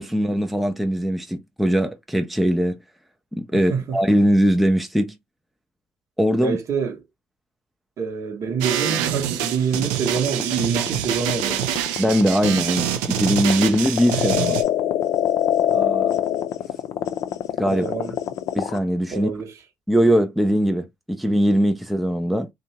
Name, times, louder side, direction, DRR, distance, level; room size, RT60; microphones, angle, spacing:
voice 1, 0.0-2.8 3.3-5.2 6.2-6.6 12.0-14.6 17.6-17.9 18.5-19.3 19.9-22.5, equal, ahead, 0.4 m, -20 dB
voice 2, 3.5-4.0 6.4-7.0 8.0-11.7 15.7-16.2 17.7-18.4 19.1-19.5, right 6 dB, 50° right, 0.9 m, -26 dB
sound 1, 8.6-14.6, right 11 dB, 75° right, 0.4 m, -26 dB
sound 2, 9.8-18.8, left 11 dB, 55° left, 0.4 m, -23 dB
2.6 x 2.2 x 2.8 m
hypercardioid pair, 60°, 7 cm